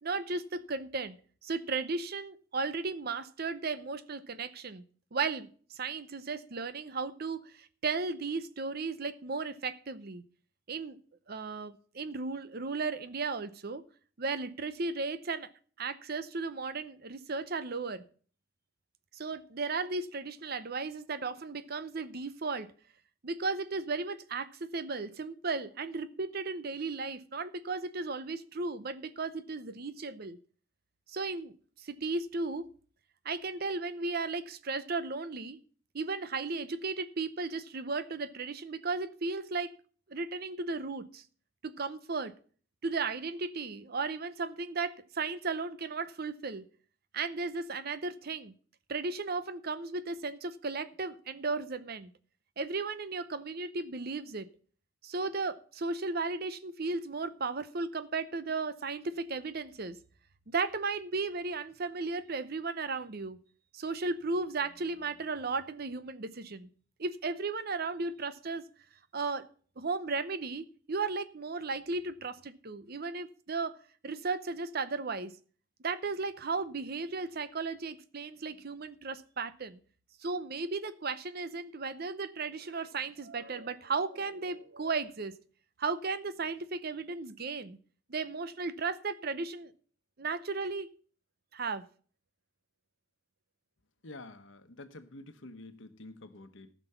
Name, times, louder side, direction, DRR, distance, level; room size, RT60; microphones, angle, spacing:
voice 1, 0.0-1.2 1.4-4.8 5.1-10.2 10.7-11.0 11.3-13.8 14.2-15.5 15.8-18.0 19.1-22.7 23.2-30.4 31.1-32.7 33.2-35.6 35.9-39.7 40.1-41.2 41.6-42.3 42.8-46.6 47.1-48.5 48.9-52.1 52.6-54.5 55.0-60.0 60.5-63.4 63.7-66.7 67.0-68.6 69.1-69.4 69.8-73.8 74.0-75.3 75.8-79.8 80.2-85.3 85.8-87.8 88.1-89.7 90.2-90.9 91.5-91.8, right 4 dB, 50° right, 0.7 m, -35 dB
voice 2, 94.0-96.7, left 2 dB, 70° left, 1.1 m, -48 dB
14.5 x 6.1 x 5.6 m
head